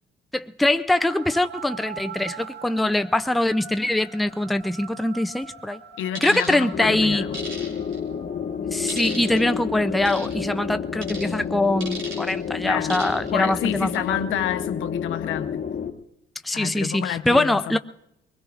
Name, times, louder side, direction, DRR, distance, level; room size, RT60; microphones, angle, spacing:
voice 1, 0.3-5.8 6.2-7.3 8.7-14.2 16.4-17.8, left 1 dB, ahead, 0.4 m, -23 dB
sound 1, 1.0-10.4, right 6 dB, 60° right, 1.8 m, -43 dB
voice 2, 6.0-7.4 12.6-13.0 13.3-15.6 16.5-17.8, left 10 dB, 85° left, 0.8 m, -29 dB
sound 2, 6.1-6.5 7.3-8.0 8.9-9.4 10.1-10.3 11.0-11.3 11.8-12.3 12.9-13.3 13.7-14.0, right 2 dB, 75° right, 5.8 m, -36 dB
sound 3, 6.7-15.9, left 7 dB, 45° left, 1.4 m, -30 dB
23.0 x 20.5 x 2.5 m
cardioid pair, 90°, 20 cm